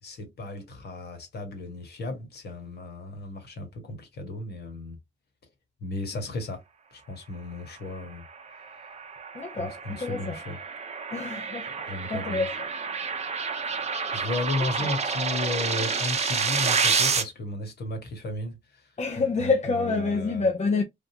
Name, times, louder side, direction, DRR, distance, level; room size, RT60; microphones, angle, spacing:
voice 1, 0.0-5.0 5.8-6.6 6.9-8.2 9.6-10.6 11.8-12.5 13.8-20.5, left 2 dB, 55° left, 1.6 m, -35 dB
sound 1, 8.4-17.2, right 5 dB, 35° right, 0.7 m, -29 dB
voice 2, 9.3-10.4 11.1-11.7 12.1-12.5 14.6-14.7 19.0-20.8, left 4 dB, 35° left, 0.8 m, -27 dB
3.6 x 2.5 x 2.8 m
cardioid pair, 90°, 20 cm